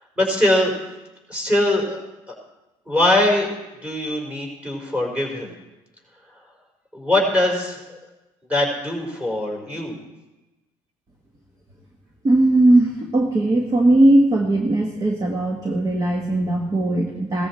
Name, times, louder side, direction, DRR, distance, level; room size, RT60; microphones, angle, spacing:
voice 1, 0.2-0.7 1.3-2.0 2.3-2.4 2.9-3.5 3.8-5.5 6.9-8.0 8.5-9.9, left 1 dB, 10° right, 0 dB, 4.3 m, -21 dB
voice 2, 12.2-17.5, right 1 dB, 30° right, 2 dB, 1.6 m, -18 dB
17.0 x 13.5 x 4.3 m, 1.0 s
cardioid pair, 105°, 11 cm